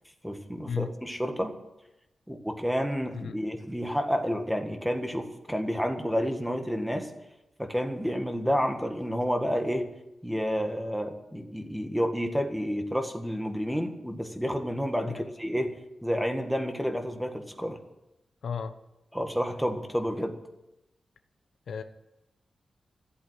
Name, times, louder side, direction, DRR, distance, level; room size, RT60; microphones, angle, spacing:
voice 1, 0.2-1.6 2.3-7.1 7.6-9.9 10.2-17.8 19.1-20.4, equal, ahead, 5 dB, 1.8 m, -30 dB
voice 2, 18.4-18.8 21.7-21.8, left 7 dB, 80° left, 9 dB, 0.9 m, -34 dB
14.5 x 8.4 x 9.9 m, 0.93 s
wide cardioid pair, 125°, 0 cm